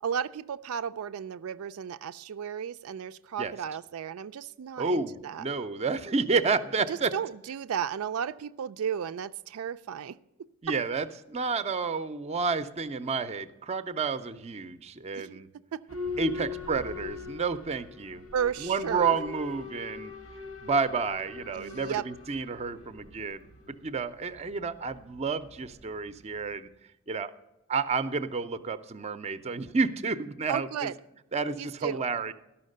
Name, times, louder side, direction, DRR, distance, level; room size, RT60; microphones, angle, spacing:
voice 1, 0.0-5.4 6.9-10.2 10.7-10.8 15.1-15.4 15.7-15.8 18.3-19.2 21.5-22.0 30.5-30.9 31.6-32.0, right 8 dB, 85° right, 12 dB, 0.4 m, -34 dB
voice 2, 4.8-7.1 10.6-15.5 16.2-18.2 18.6-20.1 20.6-26.7 27.1-27.3 27.7-30.9 31.3-32.3, right 4 dB, 30° right, 12 dB, 0.5 m, -30 dB
Boat Water vehicle / Alarm, 15.9-26.5, left 4 dB, 90° left, 1.5 m, -42 dB
13.0 x 5.7 x 6.5 m, 0.93 s
head